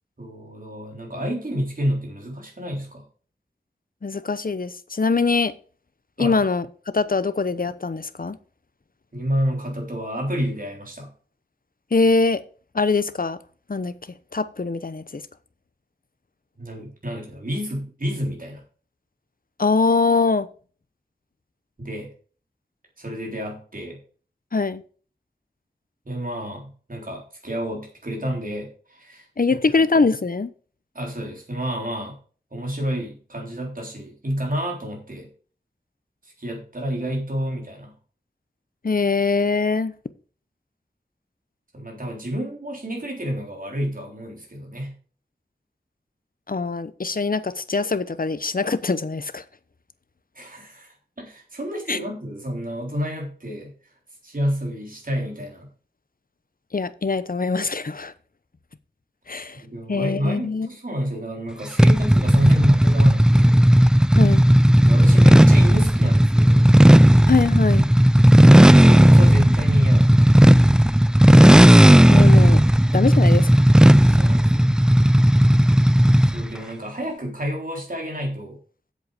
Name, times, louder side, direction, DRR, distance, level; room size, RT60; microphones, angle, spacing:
voice 1, 0.2-3.0 6.2-6.4 9.1-11.1 16.6-18.6 21.8-22.1 23.0-24.0 26.1-29.8 30.9-32.2 32.5-35.3 36.2-37.9 41.7-45.0 50.3-53.9 54.2-55.7 59.5-63.6 64.8-66.7 68.4-70.4 74.0-74.8 76.2-78.6, equal, 50° right, 3.8 m, -29 dB
voice 2, 4.0-5.5 6.2-8.4 11.9-12.4 12.7-13.4 13.7-13.9 14.3-15.2 19.6-20.5 24.5-24.8 29.4-30.5 38.8-39.9 46.5-49.4 51.9-52.0 56.7-58.1 59.3-59.6 59.9-60.7 64.1-64.4 67.3-67.9 72.1-72.6 72.9-73.7, left 4 dB, 55° left, 0.9 m, -22 dB
sound 1, 61.8-76.5, equal, 5° right, 0.4 m, -13 dB
8.0 x 7.8 x 5.0 m
wide cardioid pair, 55°, 18 cm